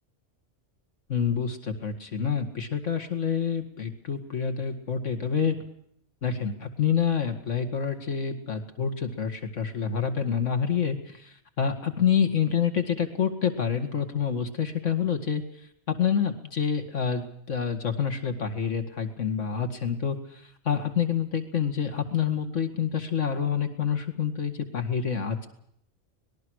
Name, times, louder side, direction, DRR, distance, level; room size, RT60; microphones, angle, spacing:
voice 1, 1.1-5.6 6.2-15.4 16.0-20.2 20.7-25.5, left 7 dB, 75° left, 7 dB, 2.5 m, -27 dB
25.0 x 20.5 x 6.5 m, 0.69 s
omnidirectional pair, 1.3 m